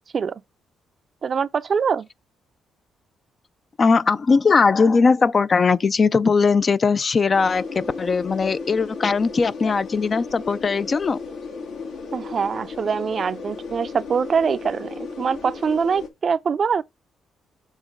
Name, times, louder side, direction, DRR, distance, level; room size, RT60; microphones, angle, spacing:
voice 1, 1.2-2.1 12.1-16.8, right 6 dB, 45° right, 0.5 m, -23 dB
voice 2, 3.8-11.2, left 4 dB, 40° left, 0.4 m, -19 dB
sound 1, 7.3-16.1, left 4 dB, 85° left, 2.3 m, -35 dB
7.3 x 3.0 x 5.1 m
cardioid pair, 90°, 0 cm